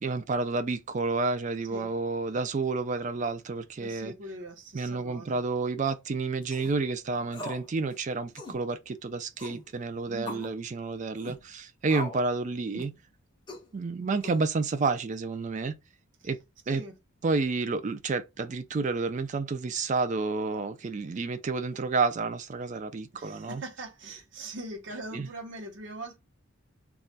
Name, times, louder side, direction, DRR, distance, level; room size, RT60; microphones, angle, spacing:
voice 1, 0.0-4.1 4.7-12.9 13.7-15.7 16.2-16.4 16.7-16.8 17.2-23.6 25.1-25.3, right 3 dB, 35° right, 0.3 m, -30 dB
voice 2, 3.8-5.4 10.1-10.5 16.2-16.3 16.7-17.0 23.1-26.2, right 1 dB, 60° right, 0.8 m, -42 dB
sound 1, 6.4-6.7 7.3-7.7 7.9-8.0 8.3-8.6 9.4-9.6 10.3-10.5 11.2-11.4 11.9-12.3 12.7-13.0 13.5-13.7 14.2-14.7, left 2 dB, 25° left, 0.6 m, -40 dB
2.3 x 2.1 x 3.9 m
head